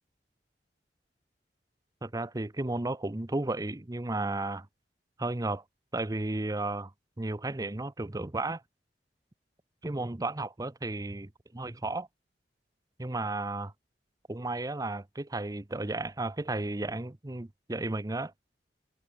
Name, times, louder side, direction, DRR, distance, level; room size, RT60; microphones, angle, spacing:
voice 1, 2.0-4.7 5.2-5.6 5.9-6.9 7.2-8.6 9.8-12.1 13.0-13.7 14.3-18.3, right 2 dB, 20° right, 0.8 m, -33 dB
head